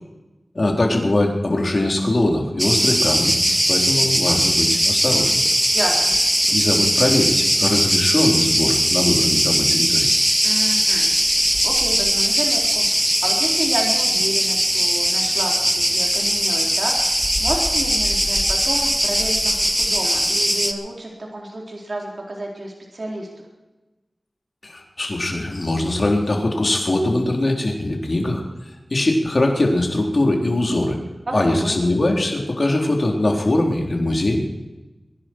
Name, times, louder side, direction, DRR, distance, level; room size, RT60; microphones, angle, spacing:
voice 1, 0.6-3.3 3.7-5.4 6.5-10.1 24.6-28.4 28.9-31.0 31.3-34.4, left 1 dB, 60° left, 1 dB, 3.9 m, -21 dB
Cricket, 2.6-20.7, equal, 10° right, 1.6 m, -19 dB
voice 2, 5.7-6.1 10.4-11.1 11.4-12.9 13.2-17.1 17.4-23.5 31.3-31.8, right 1 dB, 60° right, -1 dB, 4.0 m, -30 dB
23.5 x 11.0 x 4.6 m, 1.1 s
wide cardioid pair, 50°, 0 cm